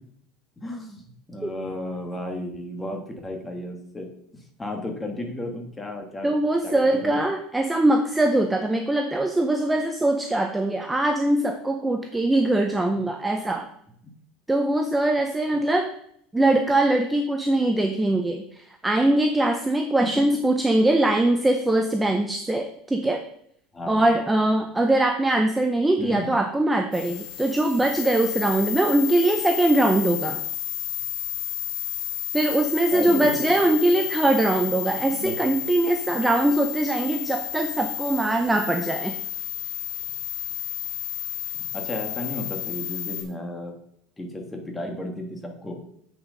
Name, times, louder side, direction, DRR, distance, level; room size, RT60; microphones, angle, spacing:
voice 1, 0.6-1.0 1.3-4.1 4.6-6.4 6.6-7.2 20.0-20.2 23.7-24.1 26.0-26.4 32.9-33.6 35.1-35.4 41.5-43.7 44.2-45.8, left 1 dB, 10° left, 2 dB, 1.6 m, -33 dB
voice 2, 6.2-13.7 14.5-15.9 16.3-23.2 23.9-30.4 32.3-39.1, right 1 dB, 5° right, 5 dB, 0.6 m, -22 dB
sound 1, 26.9-43.2, left 14 dB, 75° left, 2.5 m, -32 dB
7.9 x 6.4 x 5.1 m, 0.70 s
cardioid pair, 160°, 0 cm